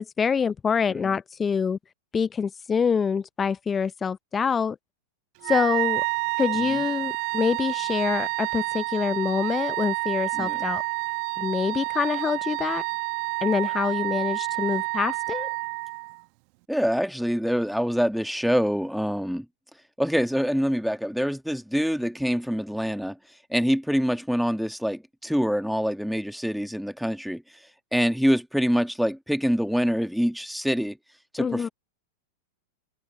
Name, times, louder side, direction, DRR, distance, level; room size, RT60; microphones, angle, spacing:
voice 1, 0.0-1.8 2.1-4.8 5.4-6.0 6.4-10.8 11.4-12.8 13.4-15.5 31.4-31.7, left 6 dB, 20° left, 0.7 m, -26 dB
Wind instrument woodwind instrument, 5.4-16.2, right 29 dB, 50° right, 1.1 m, -29 dB
voice 2, 16.7-19.5 20.0-23.2 23.5-27.4 27.9-31.0 31.3-31.7, equal, ahead, 1.7 m, -25 dB
hypercardioid pair, 100°, 0 cm